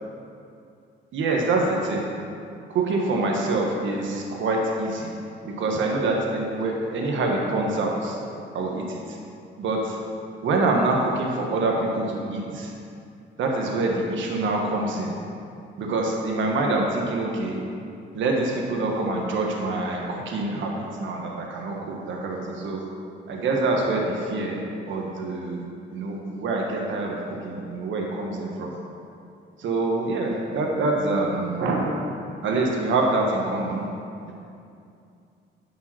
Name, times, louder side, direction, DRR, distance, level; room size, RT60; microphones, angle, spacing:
voice 1, 1.1-2.1 2.7-5.1 5.4-8.2 8.5-9.2 9.6-10.0 10.4-12.7 13.4-15.2 15.8-17.6 18.1-22.8 23.3-24.6 24.9-28.7 29.6-31.9 32.4-33.8, right 2 dB, 70° right, 0 dB, 1.4 m, -25 dB
10.5 x 5.6 x 6.1 m, 2.6 s
cardioid pair, 90°, 20 cm